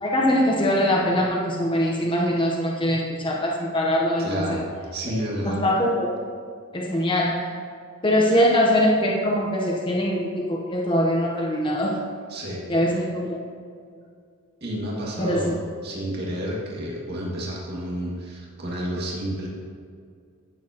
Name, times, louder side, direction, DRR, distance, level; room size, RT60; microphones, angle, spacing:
voice 1, 0.0-4.6 5.4-6.1 6.7-7.5 8.0-12.0 12.7-13.4 15.2-15.5, equal, 25° left, -2 dB, 1.0 m, -22 dB
voice 2, 4.2-5.6 12.3-12.6 14.6-19.5, equal, 50° right, -4 dB, 2.2 m, -30 dB
16.0 x 7.1 x 3.0 m, 2.2 s
head